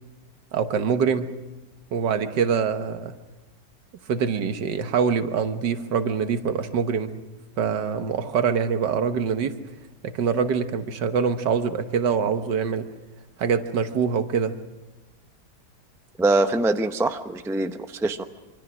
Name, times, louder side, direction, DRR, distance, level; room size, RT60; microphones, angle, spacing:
voice 1, 0.5-1.3 1.9-3.2 4.1-7.1 7.6-9.5 10.0-12.9 13.4-14.6, right 6 dB, 80° right, 9 dB, 1.8 m, -24 dB
voice 2, 16.2-18.2, right 2 dB, 5° right, 8 dB, 0.4 m, -23 dB
25.0 x 25.0 x 6.2 m, 1.1 s
omnidirectional pair, 1.9 m